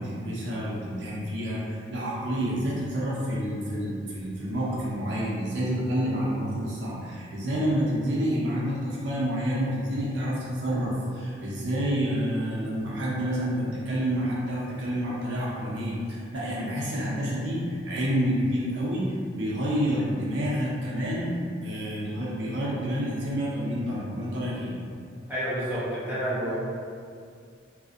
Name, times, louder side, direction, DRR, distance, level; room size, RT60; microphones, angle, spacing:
voice 1, 0.0-19.1 19.3-21.3 21.6-24.7, equal, 65° right, -6 dB, 0.5 m, -28 dB
voice 2, 25.3-26.5, equal, 10° right, -11 dB, 0.6 m, -29 dB
2.4 x 2.0 x 2.5 m, 2.2 s
head